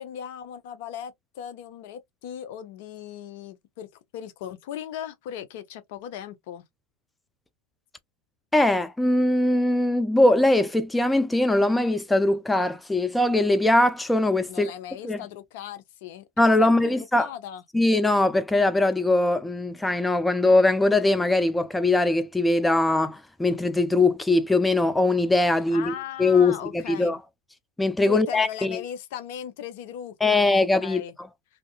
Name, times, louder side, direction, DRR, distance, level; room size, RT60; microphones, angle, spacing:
voice 1, 0.0-3.9 4.1-6.6 14.5-16.3 16.6-17.6 25.7-27.2 28.0-31.1, left 9 dB, 60° left, 0.5 m, -38 dB
voice 2, 8.5-14.7 15.0-15.2 16.4-17.3 17.7-25.9 26.2-27.2 27.8-28.8 30.2-31.0, left 2 dB, 5° left, 0.3 m, -21 dB
2.6 x 2.3 x 2.3 m
hypercardioid pair, 95°, 0 cm